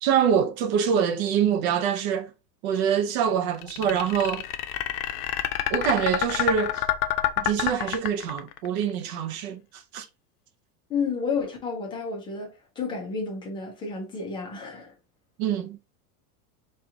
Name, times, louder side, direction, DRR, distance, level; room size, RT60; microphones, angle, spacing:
voice 1, 0.0-2.3 2.6-4.4 5.7-6.8 7.4-10.1 15.4-15.8, right 8 dB, 45° right, 0.5 m, -25 dB
sound 1, 3.6-8.7, left 13 dB, 65° left, 0.7 m, -27 dB
voice 2, 10.9-14.9, left 5 dB, 10° left, 0.4 m, -31 dB
4.3 x 2.4 x 3.7 m
supercardioid pair, 165°, 47 cm